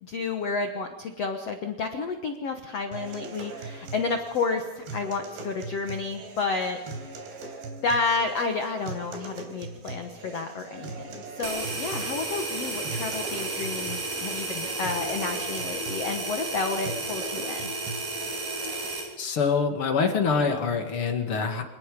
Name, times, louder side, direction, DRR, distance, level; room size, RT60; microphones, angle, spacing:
voice 1, 0.0-6.8 7.8-17.7, left 4 dB, 75° left, 5 dB, 1.4 m, -31 dB
sound 1, 2.9-18.9, right 2 dB, 85° right, 5.7 m, -40 dB
sound 2, 11.4-19.1, right 3 dB, 50° right, 5.2 m, -33 dB
voice 2, 19.2-21.6, left 5 dB, 40° left, 5 dB, 2.4 m, -25 dB
27.0 x 19.5 x 5.2 m, 1.0 s
omnidirectional pair, 4.9 m